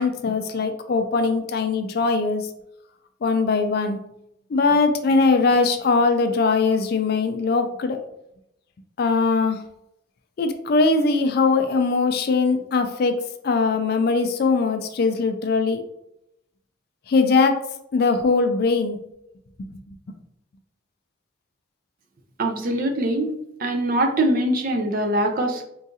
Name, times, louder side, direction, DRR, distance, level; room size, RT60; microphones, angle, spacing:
voice 1, 0.0-2.5 3.2-4.0 4.5-8.0 9.0-9.6 10.4-15.8 17.1-17.6 17.9-19.0, left 4 dB, 50° left, 7 dB, 0.3 m, -21 dB
voice 2, 22.4-23.3 23.6-25.6, right 1 dB, 45° right, 4 dB, 0.4 m, -22 dB
3.7 x 2.4 x 2.7 m, 0.81 s
head